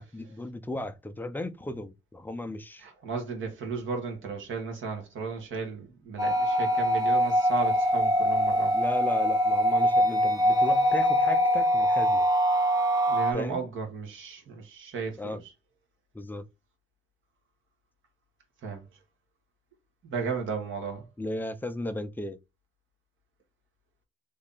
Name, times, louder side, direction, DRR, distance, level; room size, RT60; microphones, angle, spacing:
voice 1, 0.0-2.8 8.7-12.3 13.3-13.7 15.2-15.4 16.1-16.5 21.2-22.4, left 1 dB, 10° left, 0.4 m, -35 dB
voice 2, 2.8-8.8 13.1-15.4 18.6-18.8 20.0-21.0, right 5 dB, 70° right, 1.5 m, -34 dB
sound 1, 6.2-13.3, equal, 20° right, 0.7 m, -23 dB
3.2 x 2.7 x 3.8 m
cardioid pair, 130°, 21 cm